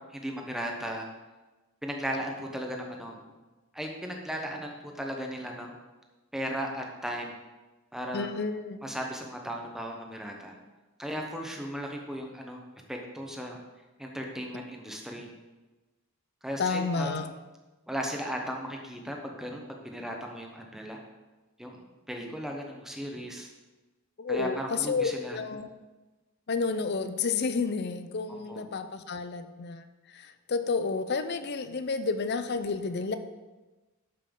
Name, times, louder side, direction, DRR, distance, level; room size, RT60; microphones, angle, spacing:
voice 1, 0.1-1.0 1.8-3.2 3.7-5.8 6.3-7.3 7.9-8.3 8.8-10.6 11.0-12.6 12.9-13.6 14.0-15.3 16.4-17.3 17.9-21.0 21.6-23.5 24.3-25.4 28.3-28.7, equal, ahead, 1 dB, 1.0 m, -36 dB
voice 2, 8.1-8.8 16.6-17.3 24.2-25.7 26.5-29.8 30.1-33.2, left 4 dB, 50° left, 10 dB, 0.6 m, -30 dB
12.0 x 5.4 x 3.8 m, 1.2 s
head